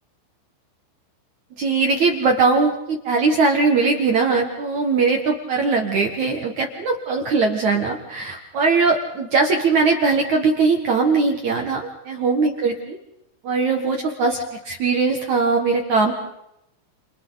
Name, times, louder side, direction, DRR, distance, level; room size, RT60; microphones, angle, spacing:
voice 1, 1.6-13.0 13.4-16.1, right 4 dB, 60° right, 2 dB, 2.1 m, -20 dB
29.5 x 29.5 x 4.1 m, 0.82 s
omnidirectional pair, 5.4 m